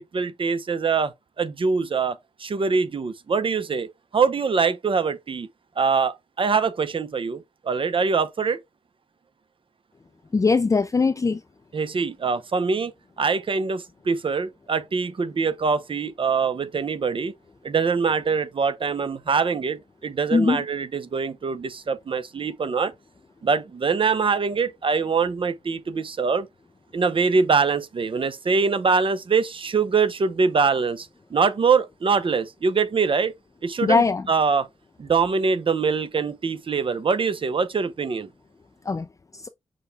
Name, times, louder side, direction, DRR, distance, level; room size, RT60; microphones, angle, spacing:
voice 1, 0.0-5.5 5.8-8.6 11.7-12.9 13.2-17.3 17.6-22.9 23.4-26.5 26.9-33.3 33.6-34.7 35.0-38.3, right 5 dB, 50° right, 0.7 m, -23 dB
voice 2, 10.3-11.4 20.3-20.6 33.8-34.2 38.9-39.1 39.4-39.5, left 4 dB, 30° left, 0.4 m, -20 dB
6.1 x 2.3 x 3.3 m
cardioid pair, 50°, 11 cm